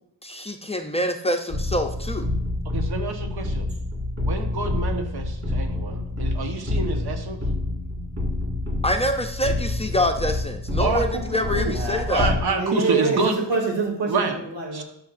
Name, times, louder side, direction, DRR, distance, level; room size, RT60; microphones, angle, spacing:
voice 1, 0.2-2.3 8.8-12.3, left 1 dB, 15° left, 4 dB, 0.6 m, -25 dB
sound 1, 1.5-12.4, left 2 dB, 35° right, 3.0 m, -27 dB
voice 2, 2.6-3.7 4.2-7.4 10.8-11.8 12.1-13.4 14.1-14.4 14.7-14.8, right 4 dB, 60° right, 4 dB, 1.4 m, -27 dB
voice 3, 11.7-14.8, right 4 dB, 80° right, -1 dB, 2.4 m, -26 dB
12.0 x 5.8 x 2.6 m, 0.72 s
cardioid pair, 90°, 43 cm